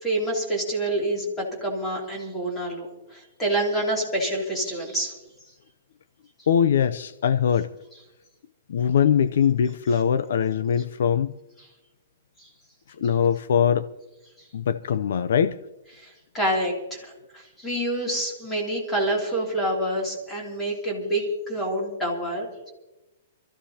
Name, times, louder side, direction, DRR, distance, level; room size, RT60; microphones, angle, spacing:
voice 1, 0.0-5.1 12.4-12.5 16.0-17.0 17.3-22.7, right 1 dB, 10° left, 3.0 m, -27 dB
voice 2, 6.5-7.7 8.7-11.3 13.0-13.9 14.5-15.6, left 8 dB, 60° left, 0.5 m, -22 dB
26.5 x 14.5 x 2.8 m
hypercardioid pair, 175°, 0 cm